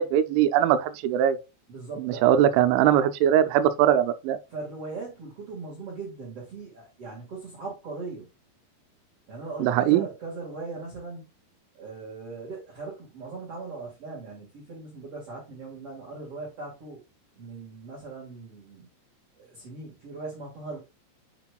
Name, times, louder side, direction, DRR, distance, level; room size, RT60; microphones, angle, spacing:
voice 1, 0.0-1.4 2.0-4.4 9.6-10.1, right 10 dB, 90° right, 3.0 m, -21 dB
voice 2, 1.7-2.4 4.5-8.3 9.3-11.3 11.7-17.0 17.4-18.9 19.4-20.8, right 3 dB, 50° right, 1.8 m, -39 dB
7.9 x 5.8 x 2.3 m
omnidirectional pair, 5.2 m